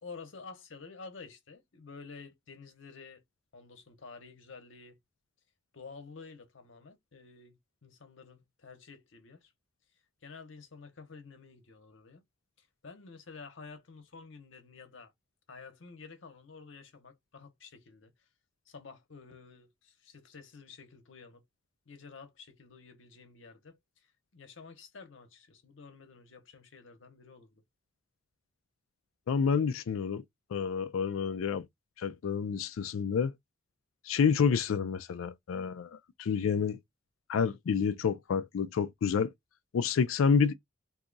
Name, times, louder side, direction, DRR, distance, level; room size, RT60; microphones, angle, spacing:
voice 1, 0.0-3.2 3.5-5.0 5.7-9.5 10.2-12.2 12.6-15.1 15.5-18.1 18.7-21.4 21.9-27.6, left 4 dB, 65° left, 0.9 m, -50 dB
voice 2, 29.3-30.2 30.5-31.7 32.0-33.3 34.1-36.8 37.3-39.3 39.7-40.5, left 6 dB, 90° left, 0.4 m, -29 dB
2.7 x 2.4 x 3.8 m
head